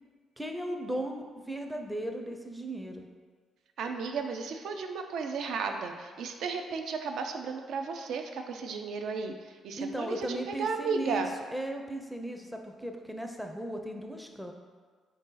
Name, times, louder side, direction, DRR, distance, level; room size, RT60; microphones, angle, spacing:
voice 1, 0.4-3.1 9.8-14.5, right 1 dB, ahead, 3 dB, 0.4 m, -36 dB
voice 2, 3.8-9.3 9.6-11.3, right 5 dB, 75° right, 5 dB, 0.4 m, -34 dB
4.0 x 2.7 x 3.7 m, 1.6 s
cardioid pair, 90°, 0 cm